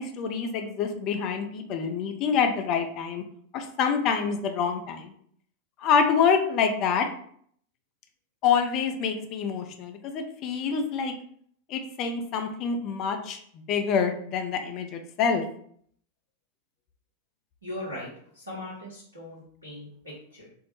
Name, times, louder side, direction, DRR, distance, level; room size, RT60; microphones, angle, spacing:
voice 1, 0.0-3.2 3.5-5.1 5.8-7.1 8.4-11.1 11.7-15.4, left 6 dB, 40° left, 6 dB, 0.5 m, -26 dB
voice 2, 17.6-18.1 18.3-20.5, left 1 dB, 85° right, -5 dB, 1.0 m, -39 dB
4.3 x 2.1 x 3.0 m, 0.63 s
figure-of-eight pair, 90°, 0 cm